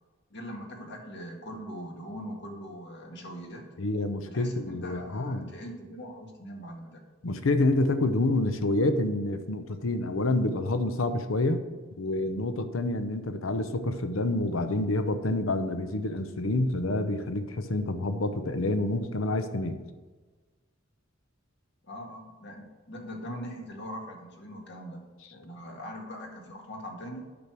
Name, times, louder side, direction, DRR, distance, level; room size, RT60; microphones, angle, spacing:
voice 1, 0.3-3.6 4.3-7.0 21.8-25.0 25.3-27.2, equal, 60° left, 2 dB, 1.8 m, -41 dB
voice 2, 3.8-5.5 7.2-11.6 12.0-19.8, left 2 dB, 85° left, 9 dB, 0.7 m, -28 dB
8.5 x 6.2 x 6.1 m, 1.3 s
head